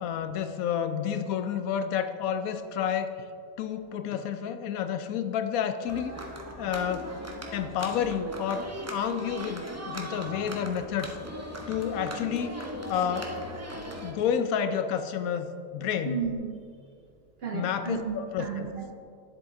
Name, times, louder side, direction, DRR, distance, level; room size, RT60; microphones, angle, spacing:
voice 1, 0.0-3.2 3.6-6.1 6.5-7.1 7.5-11.2 11.7-12.5 12.9-13.4 14.0-16.2 17.5-18.7, left 8 dB, 70° left, 9 dB, 0.9 m, -30 dB
sound 1, 5.9-14.1, equal, 25° right, 0.3 m, -39 dB
voice 2, 16.0-16.6 17.4-18.9, right 6 dB, 60° right, 3 dB, 0.6 m, -33 dB
10.0 x 7.8 x 3.7 m, 2.4 s
omnidirectional pair, 1.7 m